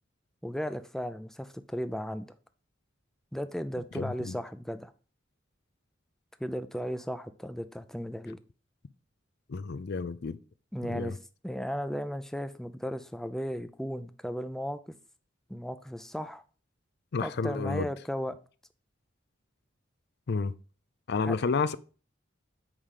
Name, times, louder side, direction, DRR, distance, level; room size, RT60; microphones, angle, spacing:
voice 1, 0.4-2.3 3.3-4.9 6.4-8.4 10.7-11.2 11.4-14.9 15.5-16.4 17.2-18.4 21.2-21.4, equal, ahead, 0.5 m, -35 dB
voice 2, 3.9-4.4 9.5-10.4 10.8-11.2 17.1-17.9 20.3-20.5 21.1-21.8, left 4 dB, 60° left, 0.5 m, -30 dB
7.4 x 5.0 x 4.8 m
head